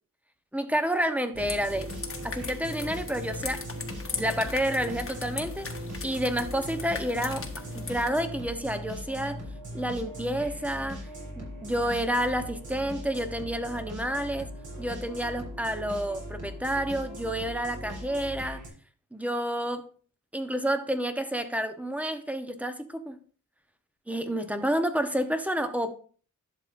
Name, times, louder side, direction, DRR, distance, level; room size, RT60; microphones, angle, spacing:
voice 1, 0.5-1.9 2.2-5.7 6.0-7.5 7.7-9.4 9.7-11.1 11.4-14.5 14.8-18.6 19.1-19.9 20.3-23.2 24.1-25.9, equal, 5° right, 1.0 m, -29 dB
sound 1, 1.3-18.7, equal, 65° right, 4.4 m, -39 dB
sound 2, 1.4-8.1, left 4 dB, 40° left, 1.3 m, -39 dB
11.5 x 6.9 x 2.6 m
wide cardioid pair, 95°, 33 cm